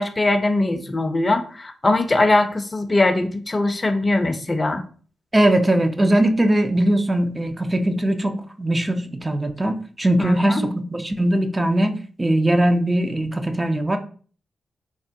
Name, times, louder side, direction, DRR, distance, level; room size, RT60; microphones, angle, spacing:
voice 1, 0.0-4.8 10.2-10.7, left 2 dB, 35° left, 8 dB, 0.5 m, -21 dB
voice 2, 5.3-14.0, right 1 dB, 25° right, 7 dB, 0.4 m, -20 dB
3.4 x 2.1 x 2.6 m, 0.42 s
supercardioid pair, 45°, 0 cm